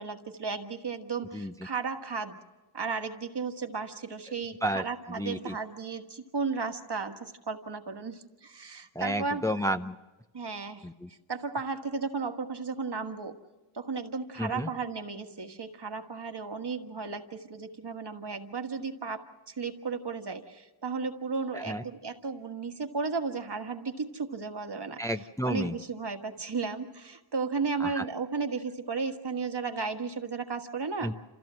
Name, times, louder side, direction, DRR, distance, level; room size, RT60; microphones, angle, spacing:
voice 1, 0.0-2.4 2.7-9.6 10.3-10.9 11.3-13.3 13.7-25.0 25.4-31.1, right 4 dB, 60° right, 6 dB, 1.6 m, -34 dB
voice 2, 4.6-5.6 8.9-9.9 10.8-11.1 14.4-14.7 21.5-21.8 25.0-25.7 27.8-28.0 31.0-31.1, equal, 5° left, 7 dB, 0.7 m, -31 dB
27.5 x 15.0 x 7.6 m, 1.1 s
wide cardioid pair, 50°, 46 cm